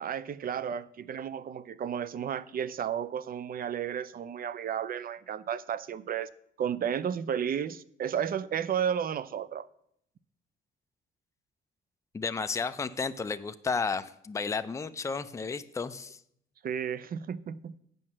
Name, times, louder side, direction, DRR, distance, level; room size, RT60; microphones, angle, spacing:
voice 1, 0.0-6.3 6.6-9.7 16.6-17.7, right 8 dB, 45° right, 0.5 m, -33 dB
voice 2, 12.1-16.2, left 5 dB, 15° left, 0.4 m, -32 dB
7.7 x 5.4 x 7.4 m
cardioid pair, 90°, 20 cm